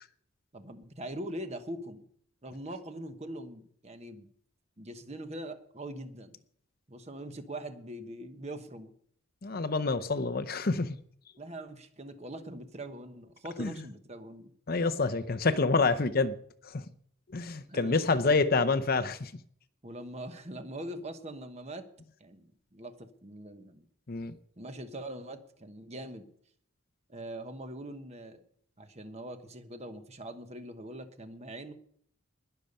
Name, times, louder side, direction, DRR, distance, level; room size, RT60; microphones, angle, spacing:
voice 1, 0.5-2.0 2.4-4.3 4.8-6.4 6.9-8.9 11.4-14.5 17.7-18.4 19.8-21.9 22.2-23.8 24.6-26.3 27.1-28.4 28.8-31.7, right 1 dB, 30° right, 1.2 m, -42 dB
voice 2, 9.4-11.0 13.6-13.7 14.7-16.3 16.6-16.8 17.3-19.3 24.1-24.3, left 3 dB, 45° left, 0.6 m, -27 dB
20.5 x 6.8 x 5.4 m
head